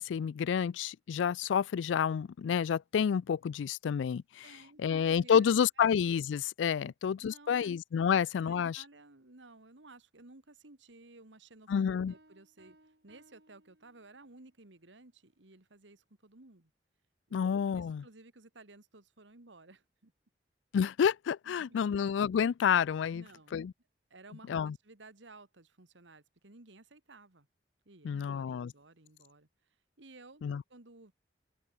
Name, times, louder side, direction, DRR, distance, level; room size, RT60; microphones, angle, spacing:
voice 1, 0.0-4.4 4.8-8.8 11.7-12.1 17.3-18.0 20.7-23.2 23.5-23.7 24.5-24.7 28.0-28.7 30.4-30.6, left 7 dB, 85° left, 0.3 m, -29 dB
voice 2, 4.4-5.9 6.8-6.9 7.2-7.7 8.0-11.7 12.0-16.7 17.3-17.4 17.7-20.1 21.4-21.9 23.1-23.7 24.1-27.5 27.9-30.4 30.7-31.1, right 2 dB, 85° right, 2.1 m, -56 dB
Piano, 12.1-14.4, right 1 dB, 65° right, 5.5 m, -64 dB
open air
head